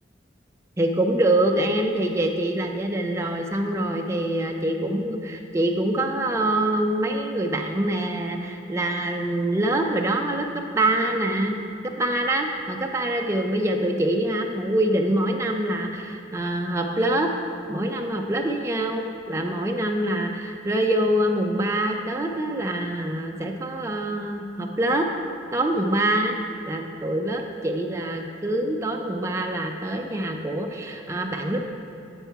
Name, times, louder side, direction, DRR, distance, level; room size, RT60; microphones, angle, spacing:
voice 1, 0.8-10.5 10.7-11.5 12.0-17.3 17.7-25.1 25.5-26.4 26.7-31.7, right 1 dB, 15° right, 2 dB, 0.4 m, -25 dB
8.0 x 5.7 x 4.5 m, 2.6 s
head